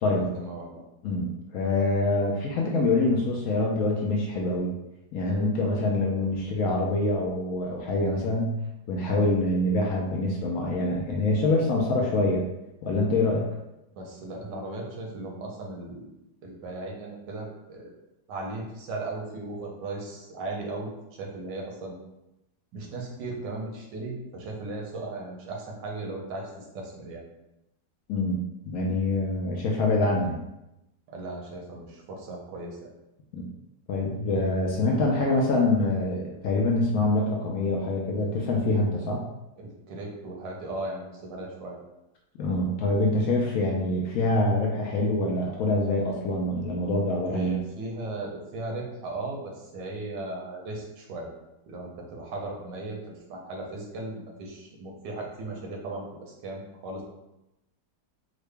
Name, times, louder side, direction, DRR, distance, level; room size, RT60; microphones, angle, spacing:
voice 1, 0.1-0.8 13.9-16.1 16.4-17.9 18.3-20.9 21.2-22.0 22.7-27.2 31.1-32.8 39.0-39.1 39.6-41.8 47.2-51.3 51.7-57.0, right 2 dB, 90° right, -1 dB, 1.5 m, -37 dB
voice 2, 1.0-4.7 5.1-8.6 8.9-12.4 12.8-13.5 28.1-28.4 28.7-30.4 33.3-33.4 33.9-39.2 42.4-47.6, left 2 dB, 70° left, -1 dB, 0.8 m, -25 dB
3.8 x 2.1 x 3.3 m, 0.91 s
omnidirectional pair, 1.9 m